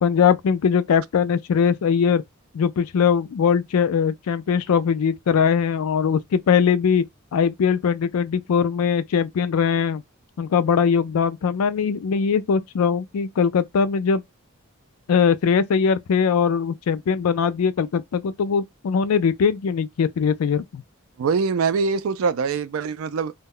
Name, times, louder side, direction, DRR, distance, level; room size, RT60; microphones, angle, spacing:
voice 1, 0.0-2.2 2.5-7.0 7.3-10.0 10.4-14.2 15.1-20.8, left 6 dB, 80° left, 0.4 m, -21 dB
voice 2, 21.2-23.3, right 5 dB, 70° right, 0.3 m, -23 dB
2.2 x 2.1 x 3.6 m
head